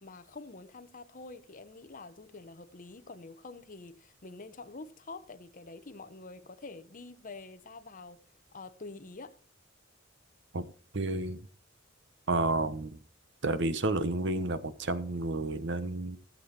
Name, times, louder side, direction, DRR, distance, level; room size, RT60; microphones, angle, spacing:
voice 1, 0.0-8.2 8.5-9.4, left 3 dB, 45° left, 1.0 m, -47 dB
voice 2, 10.5-11.4 12.3-13.0 13.4-16.2, right 2 dB, 65° right, 1.1 m, -31 dB
16.0 x 7.7 x 4.3 m
head